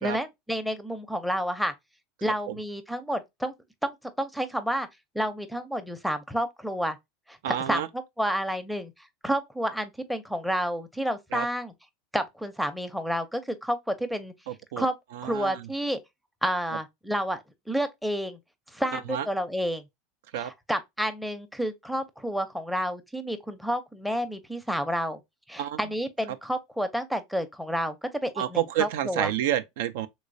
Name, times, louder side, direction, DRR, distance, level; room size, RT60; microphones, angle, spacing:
voice 1, 0.0-1.7 2.2-3.5 3.8-4.9 5.1-7.0 7.3-8.9 9.2-11.7 12.1-14.3 14.8-15.0 15.2-16.0 16.4-17.4 17.7-18.4 18.7-19.8 20.3-25.2 25.5-29.3, equal, ahead, 0.5 m, -30 dB
voice 2, 7.4-7.9 11.3-11.5 14.5-14.9 15.1-15.6 18.9-19.3 20.3-20.5 25.6-25.8 28.4-30.1, right 11 dB, 75° right, 0.3 m, -29 dB
3.1 x 3.0 x 2.6 m
supercardioid pair, 105°, 0 cm